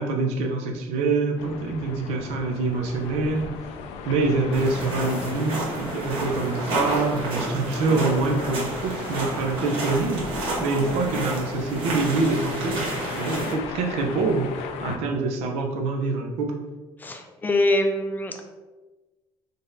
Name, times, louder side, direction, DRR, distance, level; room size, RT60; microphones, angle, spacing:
voice 1, 0.0-3.5 4.0-14.5 14.8-16.6, right 3 dB, 85° right, 2 dB, 0.7 m, -25 dB
sound 1, 1.4-15.0, left 6 dB, 90° left, 0.4 m, -37 dB
sound 2, 4.5-13.5, right 2 dB, 60° right, 1.1 m, -31 dB
sound 3, 7.3-13.7, right 1 dB, 35° right, 0.9 m, -43 dB
voice 2, 17.0-18.4, left 1 dB, 20° left, 5 dB, 0.4 m, -24 dB
3.8 x 3.5 x 2.7 m, 1.2 s
cardioid pair, 135°, 10 cm